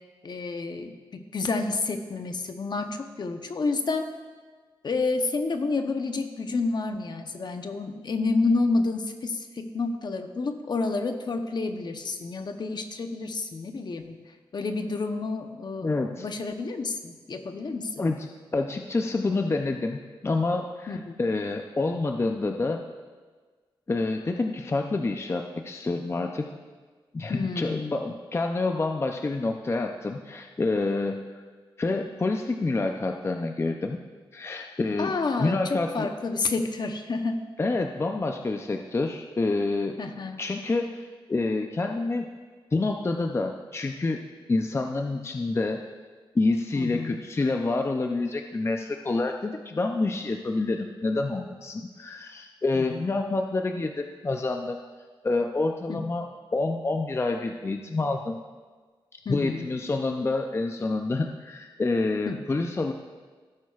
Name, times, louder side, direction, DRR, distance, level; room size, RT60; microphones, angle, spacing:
voice 1, 0.2-4.1 4.8-14.2 14.5-15.9 16.2-18.1 20.9-21.2 27.3-28.0 35.0-37.4 40.0-40.4 46.7-47.2 52.7-53.1 55.9-56.0 59.2-59.6 62.3-62.4, left 3 dB, 55° left, 6 dB, 0.8 m, -29 dB
voice 2, 15.8-16.3 18.0-20.0 20.2-22.8 23.9-26.5 27.1-31.4 31.8-34.0 34.3-36.1 37.6-40.0 40.4-42.3 42.7-44.2 44.5-45.9 46.3-54.8 55.2-56.3 56.5-58.4 59.1-62.9, left 3 dB, 30° left, 4 dB, 0.5 m, -28 dB
16.5 x 9.1 x 2.4 m, 1.4 s
wide cardioid pair, 90°, 9 cm